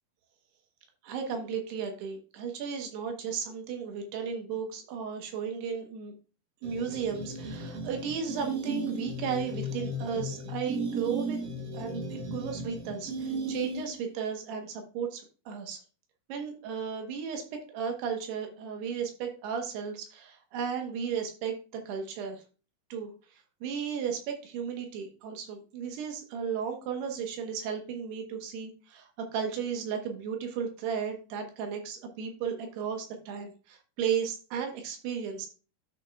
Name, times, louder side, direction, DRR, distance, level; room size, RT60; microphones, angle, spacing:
voice 1, 1.0-6.1 6.6-11.4 11.7-15.8 16.3-17.4 17.7-22.4 22.9-23.1 23.6-35.5, right 7 dB, 80° right, 4 dB, 3.1 m, -34 dB
sound 1, 6.6-14.1, right 1 dB, 60° right, 2.3 m, -35 dB
13.5 x 5.4 x 2.3 m, 0.36 s
omnidirectional pair, 4.8 m